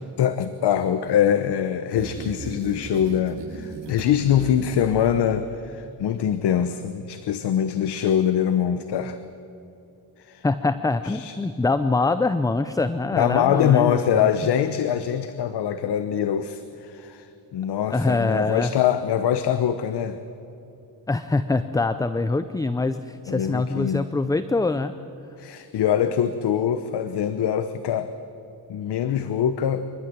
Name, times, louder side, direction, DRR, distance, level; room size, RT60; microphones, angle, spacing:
voice 1, 0.2-9.2 10.2-10.4 11.0-11.4 13.1-20.2 23.3-24.1 25.4-28.1 28.7-29.9, left 9 dB, 70° left, 11 dB, 1.0 m, -23 dB
sound 1, 2.0-5.7, right 4 dB, 70° right, 2.9 m, -37 dB
voice 2, 10.4-14.3 17.9-18.7 21.1-24.9, left 3 dB, 10° left, 11 dB, 0.4 m, -24 dB
26.5 x 12.5 x 10.0 m, 2.8 s
wide cardioid pair, 160°, 42 cm